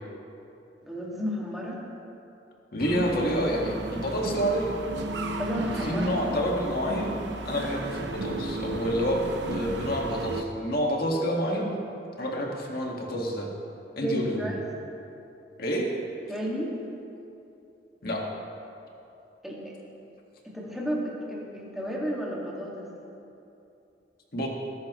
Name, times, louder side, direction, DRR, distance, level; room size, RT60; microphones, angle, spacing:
voice 1, 0.8-1.8 5.3-6.3 14.0-14.6 16.3-16.7 19.4-19.8 20.4-22.9, equal, ahead, -5 dB, 2.1 m, -32 dB
voice 2, 2.7-4.7 5.8-11.8 12.2-13.5 14.0-14.5 15.6-15.9 18.0-18.3 24.3-24.5, equal, 55° left, -1 dB, 1.9 m, -28 dB
sound 1, 2.8-10.4, right 2 dB, 80° right, 0.9 m, -34 dB
19.0 x 10.5 x 3.1 m, 2.8 s
head